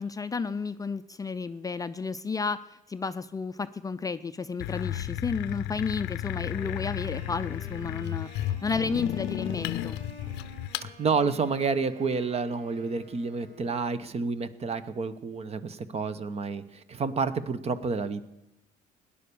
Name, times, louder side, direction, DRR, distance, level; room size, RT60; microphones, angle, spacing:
voice 1, 0.0-2.6 2.9-10.0, left 5 dB, 20° left, 11 dB, 0.5 m, -32 dB
sound 1, 4.6-10.9, left 13 dB, 90° left, 0.6 m, -33 dB
Wind instrument woodwind instrument, 6.4-14.0, equal, 70° right, 4.6 m, -50 dB
voice 2, 10.8-18.2, right 4 dB, 40° right, 13 dB, 1.0 m, -29 dB
17.5 x 10.0 x 6.9 m, 0.94 s
cardioid pair, 110°, 17 cm